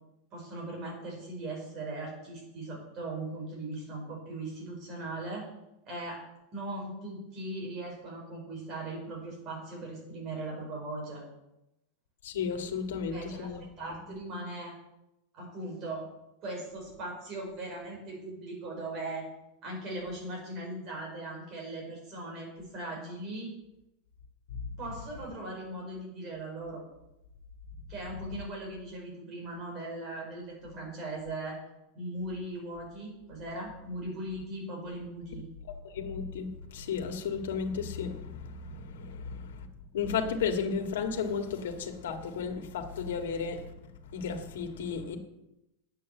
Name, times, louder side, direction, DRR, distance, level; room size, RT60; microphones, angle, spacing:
voice 1, 0.3-5.4 5.9-6.2 6.5-11.2 13.1-13.5 13.8-14.7 15.3-16.0 16.4-19.3 19.6-23.5 24.8-26.8 27.9-31.6 31.9-35.4, right 2 dB, 30° right, -1 dB, 5.4 m, -39 dB
voice 2, 12.2-13.6 13.9-14.0 24.5-24.7 35.8-39.7 39.9-43.7 44.1-45.2, left 6 dB, 85° left, 5 dB, 1.9 m, -34 dB
9.5 x 8.6 x 7.6 m, 0.90 s
supercardioid pair, 165°, 0 cm